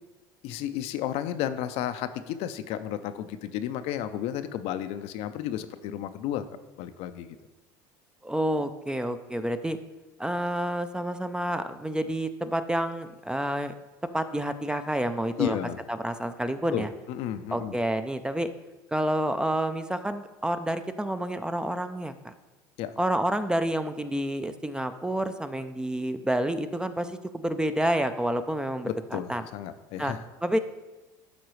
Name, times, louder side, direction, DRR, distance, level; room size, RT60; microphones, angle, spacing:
voice 1, 0.4-6.4 6.8-7.4 15.4-15.8 16.7-17.8 22.8-23.0 28.8-30.2, left 11 dB, 65° left, 10 dB, 0.5 m, -32 dB
voice 2, 8.2-9.8 10.2-13.7 14.1-15.6 15.9-16.9 17.5-18.5 18.9-22.3 23.0-29.4 30.0-30.1 30.4-30.6, right 1 dB, 5° right, 10 dB, 0.4 m, -29 dB
12.0 x 4.0 x 3.1 m, 1.1 s
supercardioid pair, 95°, 11 cm